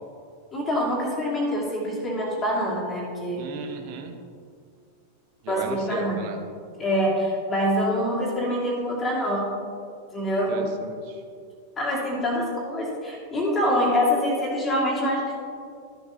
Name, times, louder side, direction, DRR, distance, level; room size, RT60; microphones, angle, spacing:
voice 1, 0.5-3.6 5.5-6.2 6.8-9.5 10.1-10.7 11.8-15.4, equal, 20° left, -4 dB, 2.4 m, -25 dB
voice 2, 3.4-4.2 5.4-6.4 10.5-11.2, right 5 dB, 45° right, 4 dB, 1.1 m, -35 dB
13.5 x 7.2 x 2.8 m, 2.3 s
figure-of-eight pair, 90°, 0 cm